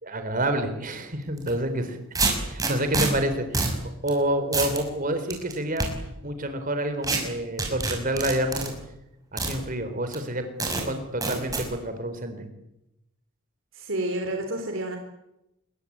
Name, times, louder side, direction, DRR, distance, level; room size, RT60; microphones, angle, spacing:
voice 1, 0.0-2.0 2.5-3.8 4.0-5.9 6.2-8.8 9.3-10.4 10.8-12.5, right 1 dB, 40° right, 9 dB, 4.1 m, -28 dB
sound 1, 1.4-1.5 2.1-3.1 3.5-3.8 4.1-4.2 4.5-4.8 5.3-5.9 7.0-7.2 7.6-8.7 9.4-9.5 10.1-10.2 10.6-10.8 11.2-11.6, right 3 dB, 15° right, 6.1 m, -26 dB
voice 2, 13.7-15.0, right 1 dB, 60° right, 4 dB, 3.7 m, -29 dB
27.0 x 22.5 x 8.9 m, 0.87 s
head